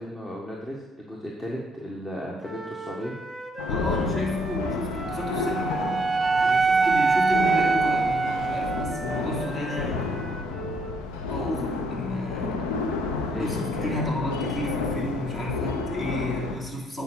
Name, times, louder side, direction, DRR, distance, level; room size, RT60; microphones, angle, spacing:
voice 1, 0.0-3.1 13.2-13.5 13.8-14.1, equal, 25° left, -2 dB, 1.7 m, -35 dB
Wind instrument woodwind instrument, 2.4-11.0, right 1 dB, ahead, 1.8 m, -37 dB
sound 1, 3.6-16.6, left 4 dB, 85° left, 0.9 m, -31 dB
voice 2, 3.7-6.0 6.3-10.4 11.3-12.7 13.4-17.0, left 1 dB, 40° left, -2 dB, 3.3 m, -32 dB
Wind instrument woodwind instrument 2, 5.1-9.3, right 4 dB, 35° right, 0.4 m, -24 dB
9.3 x 5.2 x 6.4 m, 1.1 s
hypercardioid pair, 60°, 0 cm